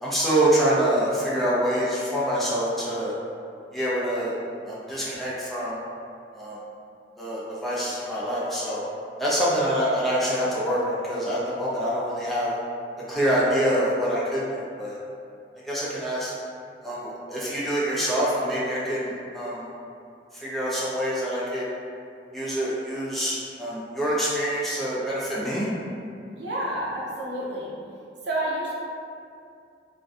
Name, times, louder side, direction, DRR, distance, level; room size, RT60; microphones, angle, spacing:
voice 1, 0.0-3.1 3.7-4.3 4.6-5.8 6.3-6.6 7.2-8.9 9.2-12.5 13.1-15.0 15.6-16.3 16.8-19.7 20.3-21.6 22.3-25.7, equal, ahead, -9 dB, 0.4 m, -26 dB
voice 2, 26.3-27.7 28.2-28.7, right 1 dB, 75° right, -5 dB, 0.7 m, -29 dB
2.5 x 2.2 x 3.6 m, 2.5 s
head